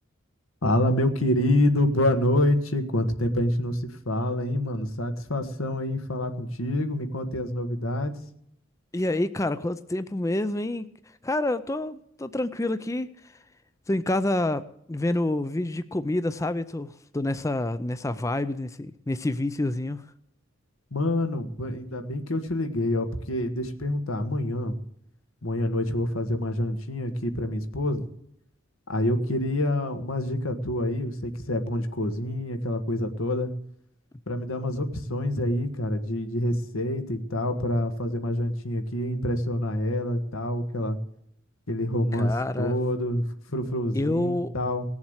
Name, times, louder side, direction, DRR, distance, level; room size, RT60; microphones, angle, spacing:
voice 1, 0.6-8.2 20.9-24.7 25.4-28.0 28.9-33.5 34.3-41.0 41.7-43.2 43.5-44.8, left 1 dB, 85° left, 1.5 m, -27 dB
voice 2, 8.9-10.9 11.2-13.4 13.9-20.0 42.1-42.8 43.9-44.5, left 1 dB, 15° left, 0.4 m, -28 dB
18.0 x 7.2 x 8.0 m
head